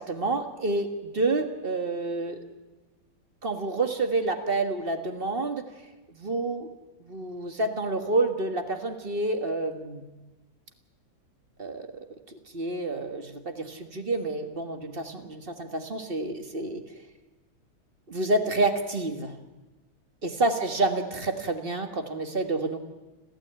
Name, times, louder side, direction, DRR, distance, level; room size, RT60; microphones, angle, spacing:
voice 1, 0.0-2.4 3.4-5.7 6.1-6.7 7.0-10.0 11.6-16.8 18.1-19.3 20.2-22.8, right 2 dB, 30° right, 7 dB, 1.5 m, -29 dB
30.0 x 13.0 x 8.9 m, 1.1 s
omnidirectional pair, 2.4 m